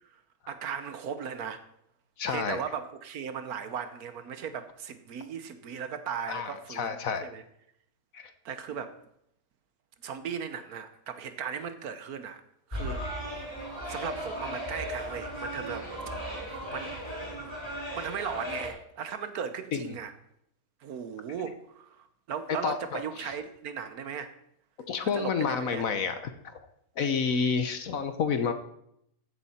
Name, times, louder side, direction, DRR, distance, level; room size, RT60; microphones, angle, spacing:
voice 1, 0.5-1.6 2.3-7.4 8.4-9.0 10.0-12.4 12.7-13.0 13.8-15.9 16.4-17.0 17.9-20.1 20.8-24.3 25.1-25.9 27.0-27.1, right 7 dB, 65° right, 1.3 m, -37 dB
voice 2, 2.2-2.6 6.3-7.2 8.1-8.3 19.7-19.9 22.6-23.0 24.8-26.2 27.0-28.5, left 6 dB, 60° left, 1.2 m, -29 dB
sound 1, 12.7-18.7, equal, 15° left, 4.8 m, -36 dB
14.5 x 8.2 x 4.2 m
omnidirectional pair, 1.8 m